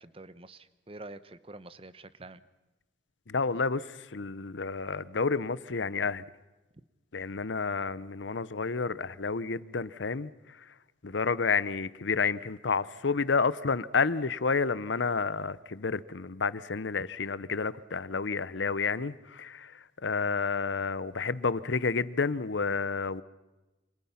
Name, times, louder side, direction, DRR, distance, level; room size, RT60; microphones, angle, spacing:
voice 1, 0.0-2.4, right 2 dB, 30° right, 1.0 m, -47 dB
voice 2, 3.3-3.8 4.1-6.2 7.1-10.3 11.0-19.7 20.0-23.2, left 4 dB, 90° left, 0.8 m, -30 dB
28.0 x 26.0 x 5.8 m
head